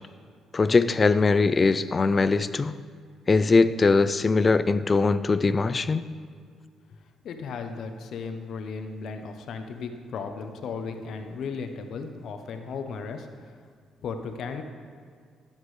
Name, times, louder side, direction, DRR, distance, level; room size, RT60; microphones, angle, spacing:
voice 1, 0.5-2.8 3.3-6.0, left 4 dB, 30° left, 14 dB, 0.3 m, -21 dB
voice 2, 7.2-13.5 14.0-14.6, left 5 dB, 65° left, 6 dB, 0.7 m, -35 dB
11.5 x 7.3 x 3.2 m, 2.1 s
cardioid pair, 80°, 0 cm